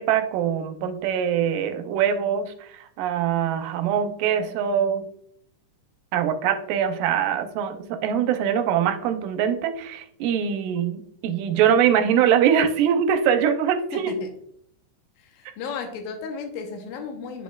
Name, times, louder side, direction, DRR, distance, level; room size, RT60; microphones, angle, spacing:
voice 1, 0.0-5.0 6.1-14.1, right 8 dB, 85° right, 7 dB, 2.2 m, -23 dB
voice 2, 13.9-14.3 15.2-17.4, left 5 dB, 80° left, 4 dB, 2.5 m, -34 dB
10.0 x 4.1 x 2.3 m, 0.67 s
omnidirectional pair, 4.0 m